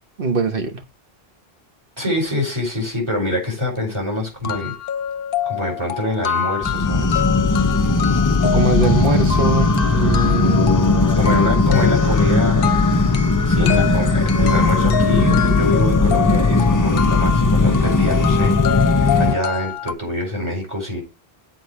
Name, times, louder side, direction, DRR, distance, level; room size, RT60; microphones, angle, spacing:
voice 1, 0.2-0.8 8.4-11.3, right 3 dB, 60° right, 1.4 m, -22 dB
voice 2, 2.0-4.7 5.4-7.2 11.2-12.8 13.4-21.0, left 2 dB, 25° right, 4.7 m, -25 dB
sound 1, 3.5-3.6 3.9-4.0 4.4-19.9, left 7 dB, 65° left, 0.8 m, -26 dB
sound 2, 6.6-19.3, left 3 dB, 25° left, 0.5 m, -17 dB
7.7 x 4.5 x 6.2 m
omnidirectional pair, 1.1 m